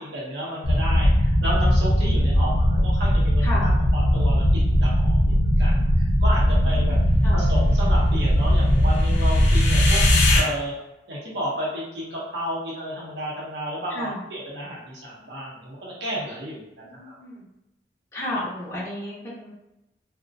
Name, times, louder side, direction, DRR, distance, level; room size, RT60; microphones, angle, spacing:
voice 1, 0.1-7.0 7.3-10.0 10.3-10.7 11.1-17.1, equal, 70° right, -5 dB, 0.6 m, -32 dB
sound 1, 0.6-10.4, equal, 80° left, 0.5 m, -19 dB
voice 2, 17.0-17.5 18.1-19.5, left 1 dB, 15° left, -7 dB, 0.5 m, -32 dB
2.4 x 2.0 x 2.5 m, 0.92 s
head